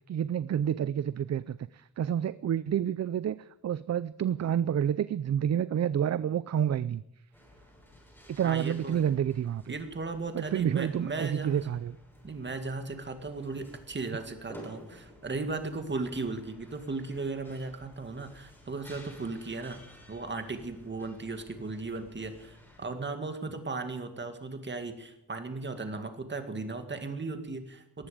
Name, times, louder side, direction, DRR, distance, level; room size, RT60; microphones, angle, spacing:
voice 1, 0.1-7.0 8.3-9.8 10.3-11.9, right 9 dB, 45° right, 16 dB, 0.5 m, -29 dB
sound 1, 7.3-22.8, equal, 5° left, 6.5 m, -54 dB
voice 2, 8.4-9.1 9.7-11.7 12.2-19.8 20.1-28.1, right 3 dB, 30° right, 7 dB, 2.0 m, -36 dB
19.0 x 14.5 x 5.0 m, 0.87 s
wide cardioid pair, 160°, 37 cm